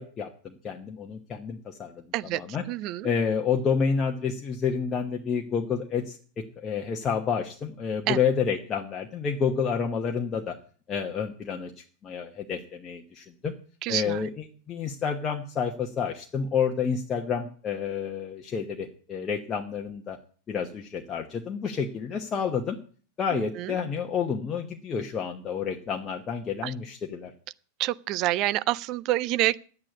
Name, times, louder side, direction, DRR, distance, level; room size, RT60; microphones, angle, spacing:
voice 1, 0.0-1.9 2.3-2.6 3.0-10.6 10.9-13.5 13.9-20.2 20.5-22.8 23.2-27.3, left 6 dB, 25° left, 1.0 m, -29 dB
voice 2, 2.7-3.1 8.1-8.2 13.8-14.2 23.3-23.8 26.6-26.7 27.8-29.6, right 16 dB, 40° right, 0.5 m, -27 dB
11.0 x 8.9 x 8.3 m
figure-of-eight pair, 90°, 0 cm